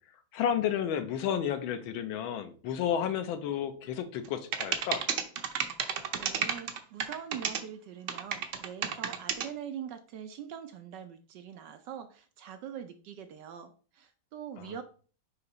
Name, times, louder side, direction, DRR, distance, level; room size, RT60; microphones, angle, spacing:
voice 1, 0.3-5.0 14.6-14.8, left 9 dB, 80° left, 8 dB, 1.6 m, -32 dB
sound 1, 4.2-4.3 4.5-7.6 8.1-9.5, right 7 dB, 90° right, 0.6 m, -31 dB
voice 2, 6.2-14.8, right 9 dB, 70° right, 8 dB, 1.1 m, -43 dB
6.6 x 2.9 x 5.4 m, 0.40 s
omnidirectional pair, 2.2 m